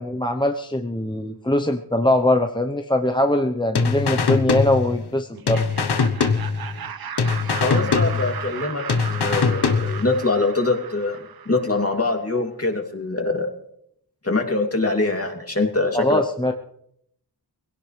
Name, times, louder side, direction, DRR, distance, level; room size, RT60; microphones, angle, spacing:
voice 1, 0.0-5.7 15.9-16.5, left 1 dB, 10° left, 5 dB, 0.9 m, -22 dB
sound 1, 3.8-5.2 5.5-6.9 7.2-8.6 8.9-10.2, left 5 dB, 85° left, 1.1 m, -22 dB
Laughter, 5.3-12.1, right 7 dB, 70° right, 0.8 m, -36 dB
voice 2, 7.6-8.8 9.1-11.2 11.4-13.5 14.2-16.2, left 3 dB, 35° left, 2 dB, 2.9 m, -23 dB
21.0 x 17.0 x 3.3 m, 0.73 s
wide cardioid pair, 65°, 38 cm